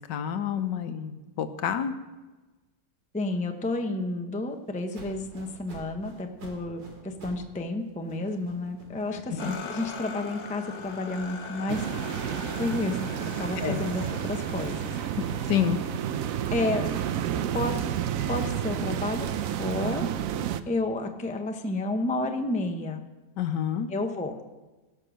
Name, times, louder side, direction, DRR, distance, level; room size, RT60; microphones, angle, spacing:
voice 1, 0.1-1.9 9.1-9.5 13.6-13.8 15.2-15.8 23.4-23.9, left 8 dB, 75° left, 9 dB, 1.5 m, -29 dB
voice 2, 3.1-13.1 13.4-15.0 16.5-16.9 17.5-17.8 18.3-20.1 20.7-23.0 23.9-24.3, left 2 dB, 10° left, 5 dB, 0.5 m, -31 dB
sound 1, 4.9-7.5 7.8-12.6 13.0-16.4 16.9-19.5, right 2 dB, 90° right, 3.1 m, -49 dB
sound 2, 9.4-19.4, left 4 dB, 45° left, 1.2 m, -42 dB
sound 3, 11.7-20.6, right 10 dB, 70° right, 0.8 m, -30 dB
17.5 x 6.6 x 6.3 m, 1.2 s
omnidirectional pair, 1.9 m